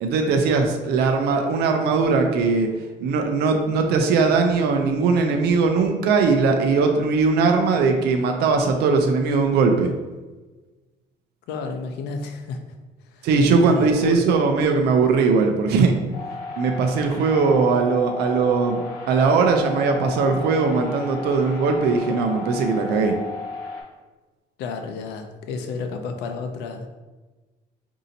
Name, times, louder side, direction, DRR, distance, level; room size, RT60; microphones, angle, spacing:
voice 1, 0.0-2.7 3.0-9.9 13.2-16.0 16.6-18.8 19.1-23.2, right 4 dB, 75° right, 4 dB, 0.5 m, -20 dB
voice 2, 11.5-12.7 13.1-13.3 13.6-14.2 24.6-26.9, left 4 dB, 85° left, 6 dB, 0.5 m, -31 dB
sound 1, 16.1-23.8, left 3 dB, 55° left, 1.4 m, -34 dB
5.0 x 2.7 x 2.7 m, 1.2 s
cardioid pair, 110°, 17 cm